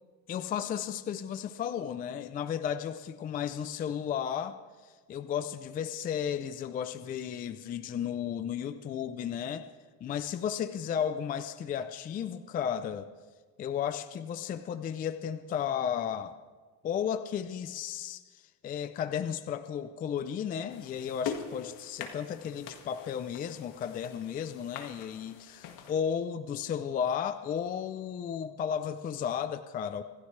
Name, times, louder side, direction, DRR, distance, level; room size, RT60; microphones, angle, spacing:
voice 1, 0.3-4.6 5.1-9.6 10.0-13.1 13.6-16.4 16.8-30.0, left 8 dB, 20° left, 11 dB, 0.4 m, -34 dB
sound 1, 20.7-25.9, left 7 dB, 55° left, 1.8 m, -43 dB
25.5 x 15.0 x 3.2 m, 1.4 s
cardioid pair, 155°, 40 cm